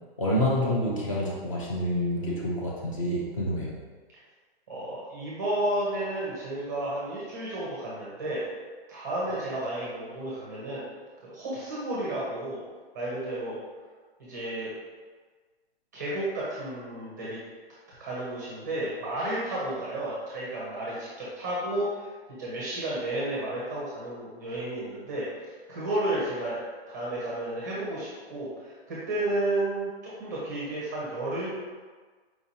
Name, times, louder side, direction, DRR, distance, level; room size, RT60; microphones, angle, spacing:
voice 1, 0.2-3.8, equal, 30° left, -4 dB, 0.5 m, -28 dB
voice 2, 4.7-8.5 8.9-10.8 11.2-12.6 12.9-13.6 14.2-14.7 15.9-17.4 18.0-22.1 22.4-26.6 26.9-31.5, right 1 dB, 15° right, -7 dB, 0.5 m, -32 dB
4.5 x 2.9 x 2.7 m, 1.4 s
hypercardioid pair, 170°, 32 cm